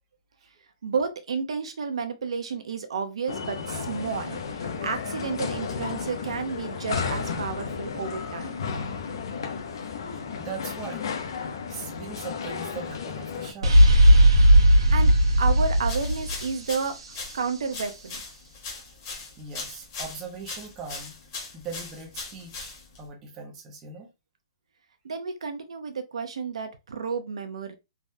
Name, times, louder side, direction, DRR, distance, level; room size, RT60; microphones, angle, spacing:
voice 1, 0.8-8.5 14.6-15.1 15.4-17.0 17.3-18.2 25.0-27.7, right 5 dB, 80° right, 0.6 m, -31 dB
sound 1, 3.3-13.5, left 5 dB, 50° left, 0.5 m, -33 dB
voice 2, 10.4-11.1 11.7-13.9 19.4-21.2 21.5-22.7 23.0-24.1, right 5 dB, 15° right, 0.5 m, -40 dB
sound 2, 13.6-17.4, equal, 65° right, 1.0 m, -17 dB
sound 3, 15.8-23.1, left 4 dB, 30° left, 0.9 m, -40 dB
3.4 x 2.1 x 2.6 m
hypercardioid pair, 180°, 3 cm